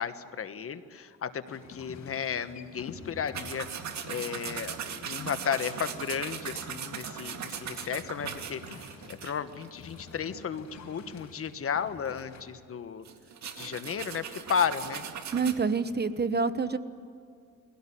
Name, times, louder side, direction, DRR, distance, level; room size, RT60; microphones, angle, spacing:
voice 1, 0.0-3.7 4.0-13.0 13.6-15.0, left 7 dB, 50° left, 11 dB, 1.3 m, -34 dB
sound 1, 1.5-12.4, left 4 dB, 65° left, 4.8 m, -49 dB
sound 2, 3.3-10.1 10.5-10.7 11.0-11.1 13.0-15.5, right 7 dB, 65° right, 2.2 m, -39 dB
voice 2, 15.3-16.8, right 4 dB, 35° right, 12 dB, 1.1 m, -27 dB
22.0 x 17.0 x 10.0 m, 2.3 s
cardioid pair, 90°, 30 cm